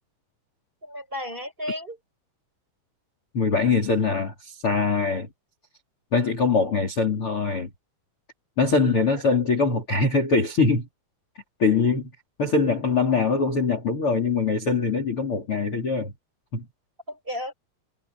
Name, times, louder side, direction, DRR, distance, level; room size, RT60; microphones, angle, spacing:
voice 1, 0.8-2.0 9.1-9.2 17.1-17.5, left 1 dB, 10° right, 5.2 m, -33 dB
voice 2, 3.3-5.3 6.1-7.7 8.6-10.9 11.6-12.1 12.4-16.1 16.5-16.7, left 4 dB, 30° left, 3.6 m, -23 dB
omnidirectional pair, 6.0 m